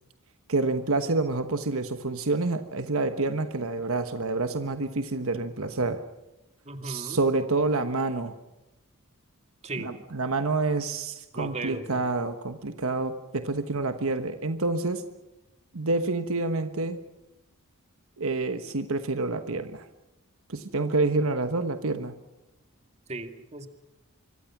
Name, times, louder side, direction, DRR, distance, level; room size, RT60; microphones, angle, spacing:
voice 1, 0.5-6.0 6.8-8.3 9.8-15.0 15.7-17.0 18.2-19.9 20.5-22.1, right 3 dB, 65° right, 8 dB, 1.3 m, -28 dB
voice 2, 6.7-7.2 9.6-9.9 11.3-12.0 23.1-23.7, right 2 dB, 30° right, 7 dB, 2.2 m, -36 dB
25.5 x 24.0 x 6.1 m, 0.97 s
head